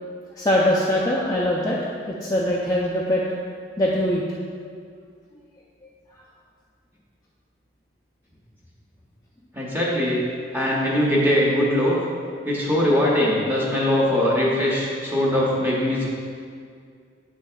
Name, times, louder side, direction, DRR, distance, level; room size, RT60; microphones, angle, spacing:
voice 1, 0.4-3.2 3.8-4.2, left 1 dB, 20° left, -5 dB, 0.4 m, -22 dB
voice 2, 9.5-10.2 10.5-12.0 12.4-16.1, left 1 dB, 10° right, -5 dB, 0.9 m, -21 dB
7.3 x 6.0 x 2.3 m, 2.1 s
head